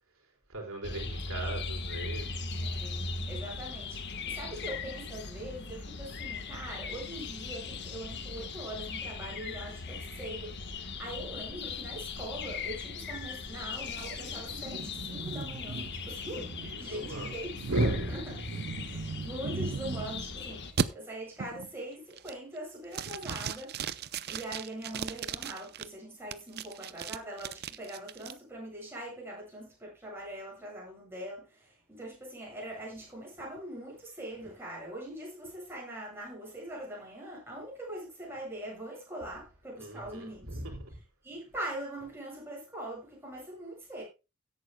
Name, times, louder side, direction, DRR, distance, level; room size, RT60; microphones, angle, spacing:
voice 1, 0.5-2.3 16.6-17.3 17.7-18.2 39.8-40.9, right 1 dB, 65° right, 4.3 m, -36 dB
sound 1, 0.8-20.7, left 4 dB, 55° left, 1.3 m, -39 dB
voice 2, 2.6-17.5 18.1-18.2 18.8-40.6 41.2-44.0, right 1 dB, 10° right, 7.7 m, -42 dB
sound 2, 13.9-20.3 20.8-20.9 21.4-21.7 22.1-22.6 22.9-25.8 26.3-28.3, right 5 dB, 50° right, 0.6 m, -37 dB
16.5 x 9.1 x 2.2 m
head